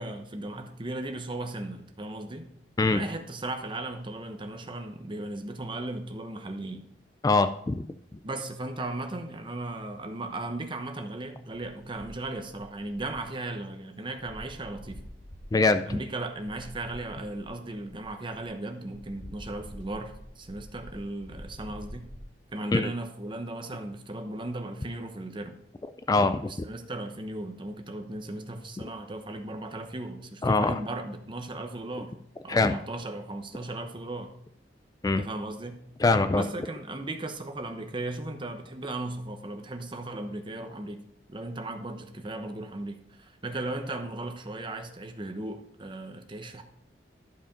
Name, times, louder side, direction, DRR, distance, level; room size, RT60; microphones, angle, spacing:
voice 1, 0.0-2.5 2.9-6.8 8.2-15.1 15.9-22.1 22.5-25.6 26.5-32.1 32.4-34.3 35.2-35.8 36.3-41.0 41.3-46.6, right 2 dB, 30° right, 6 dB, 0.9 m, -36 dB
voice 2, 7.2-7.8 15.5-15.8 22.7-22.9 26.1-26.5 30.4-30.8 32.5-32.8 35.0-35.2 36.0-36.4, left 3 dB, 20° left, 10 dB, 0.3 m, -23 dB
sound 1, 11.5-13.8 14.2-18.5 18.8-22.2, equal, 80° left, 3.7 m, -47 dB
11.5 x 5.0 x 5.2 m, 0.72 s
head